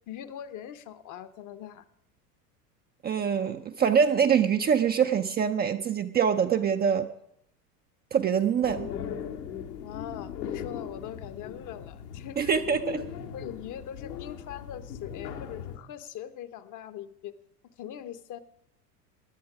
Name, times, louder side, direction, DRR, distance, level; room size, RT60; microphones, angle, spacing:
voice 1, 0.1-1.8 9.8-12.6 13.3-17.3 17.8-18.4, left 10 dB, 40° left, 11 dB, 1.0 m, -41 dB
voice 2, 3.0-7.1 8.1-8.9 12.4-13.0, right 7 dB, 20° right, 6 dB, 0.5 m, -24 dB
sound 1, 8.6-15.8, left 8 dB, 75° left, 1.8 m, -39 dB
17.0 x 10.5 x 4.9 m, 0.76 s
hypercardioid pair, 90°, 48 cm